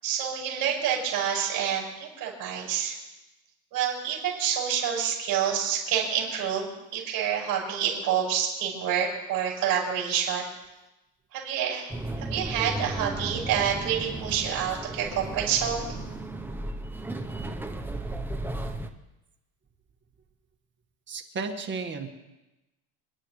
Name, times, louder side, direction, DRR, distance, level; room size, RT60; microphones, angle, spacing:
voice 1, 0.0-3.0 3.7-10.4 11.3-15.9, right 8 dB, 55° right, -3 dB, 7.1 m, -28 dB
sound 1, 11.9-18.9, right 2 dB, 5° right, 0.9 m, -35 dB
voice 2, 21.1-22.1, right 4 dB, 25° right, 3 dB, 1.8 m, -33 dB
29.5 x 11.5 x 3.3 m, 1.0 s
cardioid pair, 135°, 41 cm